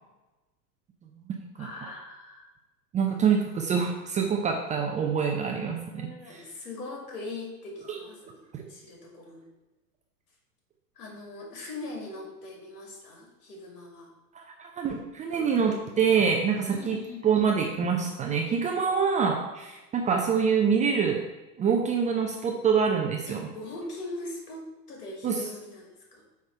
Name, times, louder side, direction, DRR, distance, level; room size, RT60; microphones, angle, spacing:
voice 1, 1.6-2.5 5.5-5.6 5.9-9.5 10.9-14.1 16.7-17.3 23.3-26.2, left 2 dB, 65° left, 0 dB, 2.7 m, -41 dB
voice 2, 2.9-6.1 7.9-8.0 8.5-8.6 14.3-17.0 17.2-21.2 21.6-23.5 25.2-25.3, right 6 dB, 15° right, 1 dB, 0.6 m, -25 dB
8.8 x 3.6 x 5.6 m, 1.1 s
figure-of-eight pair, 90°, 49 cm